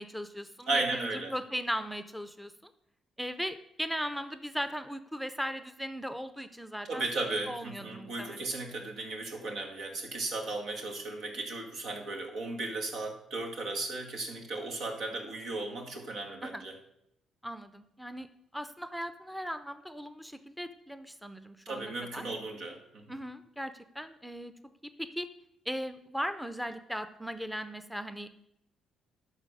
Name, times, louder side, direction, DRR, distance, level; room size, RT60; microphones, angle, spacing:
voice 1, 0.0-2.5 3.2-8.4 16.4-16.6 17.4-18.3 18.5-22.2 23.1-24.5 25.0-25.3 25.7-28.3, equal, ahead, 10 dB, 0.6 m, -38 dB
voice 2, 0.7-1.3 6.8-16.8 21.7-23.2, right 2 dB, 80° right, 2 dB, 2.0 m, -35 dB
11.5 x 4.1 x 6.5 m, 0.78 s
cardioid pair, 90°, 0 cm